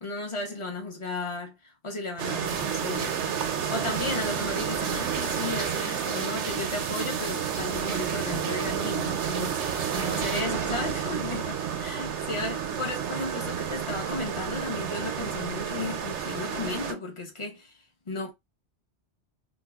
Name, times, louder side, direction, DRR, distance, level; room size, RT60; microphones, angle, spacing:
voice 1, 0.0-17.8 18.1-18.3, left 3 dB, 30° left, 0.7 m, -34 dB
sound 1, 2.2-16.9, right 8 dB, 85° right, 0.9 m, -31 dB
sound 2, 2.4-10.4, right 5 dB, 50° right, 0.6 m, -39 dB
5.1 x 2.2 x 2.2 m
omnidirectional pair, 1.1 m